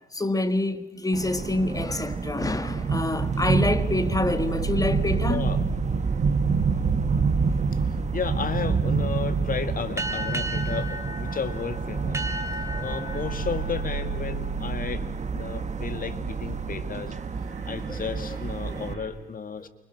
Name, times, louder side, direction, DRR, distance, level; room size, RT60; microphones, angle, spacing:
voice 1, 0.1-5.5 12.7-13.2 17.9-18.0 18.7-18.8, left 2 dB, 20° left, 1.7 m, -27 dB
sound 1, 1.1-18.9, right 5 dB, 35° right, 1.4 m, -28 dB
sound 2, 2.9-19.1, right 6 dB, 75° right, 5.4 m, -35 dB
voice 2, 5.3-5.6 8.1-12.2 12.8-17.2 17.6-19.7, left 6 dB, 45° left, 2.0 m, -33 dB
sound 3, 10.0-15.1, equal, 15° right, 2.2 m, -35 dB
29.0 x 25.5 x 6.5 m
cardioid pair, 100°, 19 cm